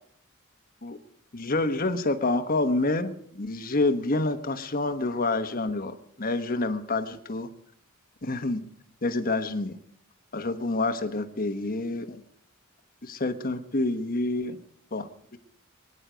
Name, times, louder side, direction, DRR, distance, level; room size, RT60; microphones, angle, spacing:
voice 1, 1.3-7.5 8.2-8.6 9.0-9.8 10.3-12.2 13.0-14.6 14.9-15.4, left 2 dB, 45° left, 8 dB, 1.3 m, -28 dB
23.5 x 9.9 x 5.1 m, 0.66 s
head